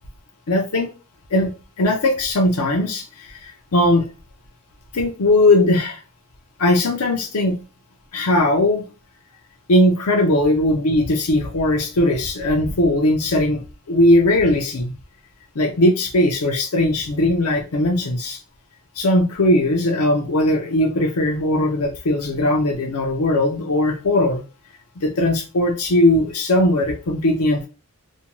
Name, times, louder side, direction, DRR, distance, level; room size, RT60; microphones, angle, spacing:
voice 1, 0.5-0.9 1.3-1.5 1.8-4.1 4.9-6.0 6.6-7.6 8.1-8.8 9.7-13.6 13.9-14.9 15.6-18.4 19.0-24.4 25.0-27.7, left 1 dB, 75° left, 2 dB, 0.6 m, -19 dB
2.6 x 2.2 x 2.9 m, 0.32 s
head